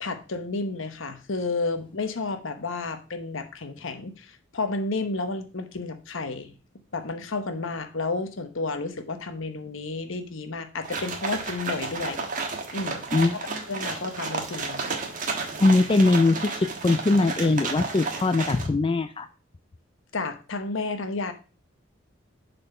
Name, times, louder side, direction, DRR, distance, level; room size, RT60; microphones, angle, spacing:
voice 1, 0.0-6.5 6.9-12.3 12.7-13.0 13.3-13.4 13.7-15.0 20.1-21.3, left 3 dB, 70° left, 8 dB, 1.0 m, -31 dB
sound 1, 10.8-18.7, right 4 dB, 40° right, 1.3 m, -32 dB
voice 2, 13.1-14.0 15.6-19.3, left 2 dB, 25° left, 9 dB, 0.4 m, -22 dB
6.8 x 4.4 x 5.4 m, 0.35 s
head